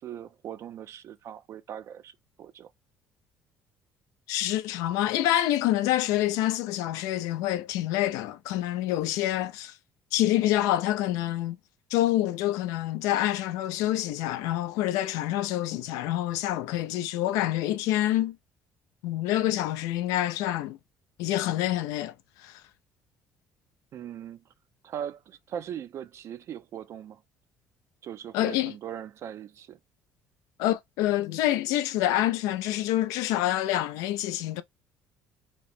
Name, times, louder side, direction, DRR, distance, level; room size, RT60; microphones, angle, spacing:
voice 1, 0.0-2.7 23.9-24.4 24.8-27.2 28.0-29.8, right 9 dB, 55° right, 0.4 m, -40 dB
voice 2, 4.3-9.8 10.1-11.6 11.9-18.4 19.0-20.8 21.2-22.6 28.3-28.7 30.6-34.6, left 14 dB, 85° left, 0.3 m, -27 dB
2.9 x 2.1 x 3.0 m
cardioid pair, 95°, 6 cm